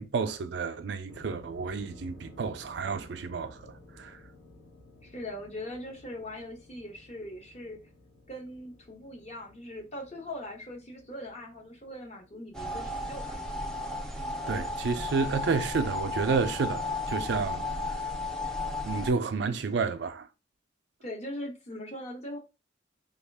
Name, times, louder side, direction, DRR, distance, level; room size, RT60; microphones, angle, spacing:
voice 1, 0.0-4.2 14.5-18.0 18.9-20.3, right 4 dB, 60° right, 0.4 m, -30 dB
sound 1, 1.1-16.3, left 1 dB, 70° left, 1.2 m, -55 dB
voice 2, 5.0-7.8 8.3-13.4 21.0-22.4, left 1 dB, 35° left, 0.8 m, -41 dB
sound 2, 12.5-19.1, left 2 dB, 5° left, 0.4 m, -34 dB
3.5 x 2.3 x 3.3 m
head